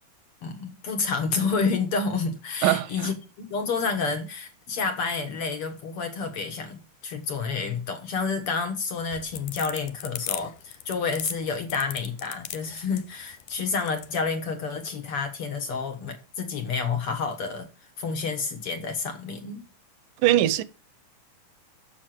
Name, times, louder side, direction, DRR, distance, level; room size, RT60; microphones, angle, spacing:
voice 1, 0.4-17.7 18.0-19.7, left 4 dB, 60° left, 1.6 m, -29 dB
voice 2, 2.6-3.1 20.2-20.6, right 14 dB, 80° right, 2.3 m, -21 dB
sound 1, 9.0-14.1, left 13 dB, 80° left, 2.2 m, -37 dB
7.5 x 6.6 x 7.5 m
omnidirectional pair, 3.8 m